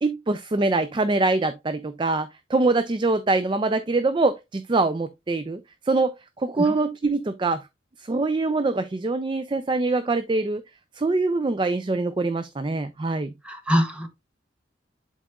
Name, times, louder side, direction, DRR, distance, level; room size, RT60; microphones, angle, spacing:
voice 1, 0.0-5.6 5.9-7.6 8.0-10.6 11.0-13.3, right 3 dB, 25° right, 0.3 m, -24 dB
voice 2, 13.5-14.1, equal, 5° right, 1.0 m, -24 dB
11.0 x 4.1 x 2.3 m
head